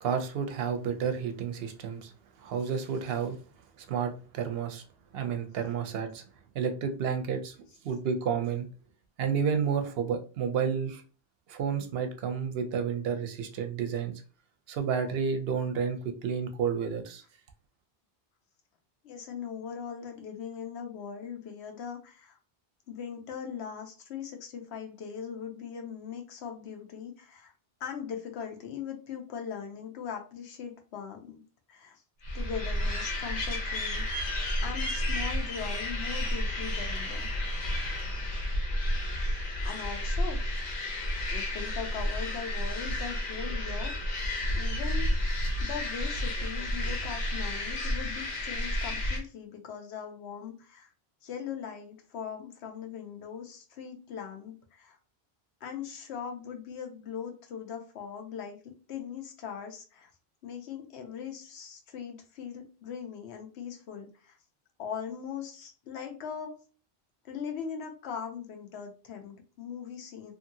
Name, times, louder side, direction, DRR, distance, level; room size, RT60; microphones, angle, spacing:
voice 1, 0.0-2.1 2.4-3.4 3.8-4.8 5.1-6.2 6.5-7.6 7.8-8.7 9.2-11.0 11.5-14.1 14.7-17.2, right 6 dB, 70° right, 7 dB, 0.7 m, -31 dB
voice 2, 19.0-22.4 22.9-27.5 27.8-31.4 31.7-32.0 32.3-34.3 34.6-37.3 39.2-40.4 41.3-44.2 44.5-50.9 51.2-55.0 55.6-60.1 60.4-64.4 64.8-66.6 67.2-70.3, left 7 dB, 80° left, 4 dB, 0.9 m, -40 dB
sound 1, 32.2-49.2, left 1 dB, 55° left, 0.9 m, -31 dB
2.7 x 2.6 x 2.6 m, 0.37 s
omnidirectional pair, 1.1 m